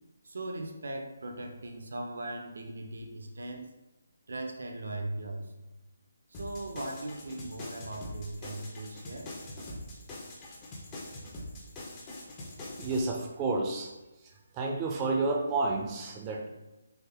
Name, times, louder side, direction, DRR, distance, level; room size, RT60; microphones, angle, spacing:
voice 1, 0.2-3.6 4.3-5.7 6.4-9.3, right 2 dB, 70° right, 3 dB, 0.6 m, -39 dB
sound 1, 6.3-13.0, left 1 dB, 20° left, 0.6 m, -43 dB
voice 2, 12.8-13.9 14.5-16.5, right 3 dB, 20° right, 0 dB, 0.5 m, -30 dB
3.4 x 2.0 x 3.4 m, 1.0 s
figure-of-eight pair, 155°, 0 cm